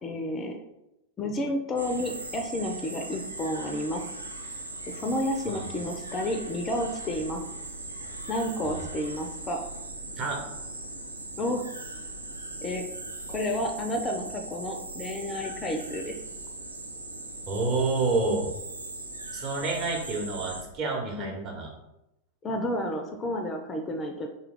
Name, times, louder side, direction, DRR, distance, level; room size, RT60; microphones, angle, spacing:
voice 1, 0.0-0.6 1.2-4.0 4.9-7.4 8.3-9.6 11.4-11.6 12.6-12.8 13.3-16.2 21.2-21.4 22.4-24.3, left 1 dB, 25° left, 4 dB, 0.4 m, -31 dB
sound 1, 1.8-20.6, right 2 dB, 80° right, 0.4 m, -39 dB
voice 2, 17.5-18.5 19.3-21.7, right 3 dB, 35° right, 0 dB, 0.9 m, -29 dB
3.1 x 2.2 x 3.6 m, 0.89 s
figure-of-eight pair, 90°, 0 cm